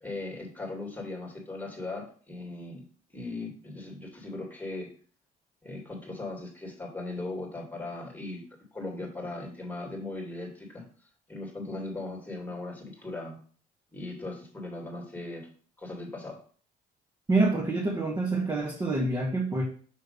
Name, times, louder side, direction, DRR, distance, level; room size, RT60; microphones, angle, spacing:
voice 1, 0.0-2.8 3.1-4.9 5.6-8.4 8.7-10.8 11.3-13.4 13.9-15.5 15.8-16.4, left 2 dB, 10° left, 0 dB, 2.2 m, -38 dB
voice 2, 17.3-19.6, right 2 dB, 25° right, -2 dB, 1.5 m, -26 dB
6.6 x 3.2 x 5.3 m, 0.43 s
cardioid pair, 110°, 17 cm